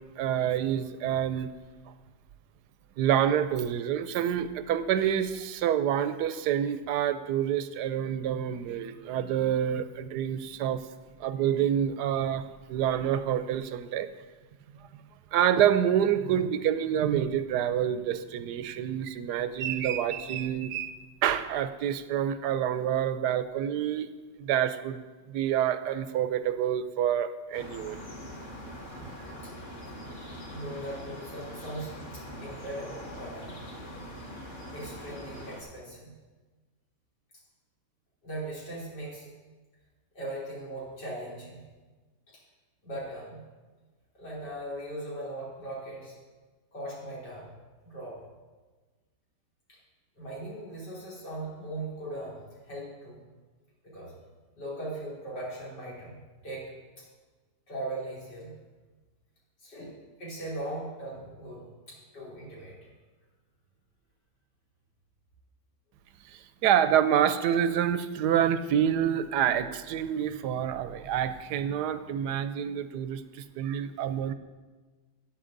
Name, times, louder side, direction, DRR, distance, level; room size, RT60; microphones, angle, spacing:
voice 1, 0.2-1.5 3.0-10.8 11.2-14.1 15.3-20.9 21.2-24.1 24.4-25.0 25.3-28.0 29.0-29.1 66.6-74.3, right 9 dB, 80° right, 12 dB, 1.1 m, -27 dB
sound 1, 27.5-35.6, equal, 30° left, 1.6 m, -43 dB
voice 2, 30.4-33.6 34.7-36.1 38.2-39.3 40.1-41.6 42.3-42.4 42.8-43.4 44.1-46.2 46.7-47.5 47.8-48.2 49.7-49.8 50.2-53.2 53.8-54.1 54.6-56.7 57.0-57.1 57.7-58.5 59.6-62.9, right 1 dB, 85° left, -7 dB, 4.3 m, -39 dB
13.0 x 8.8 x 3.8 m, 1.3 s
omnidirectional pair, 1.8 m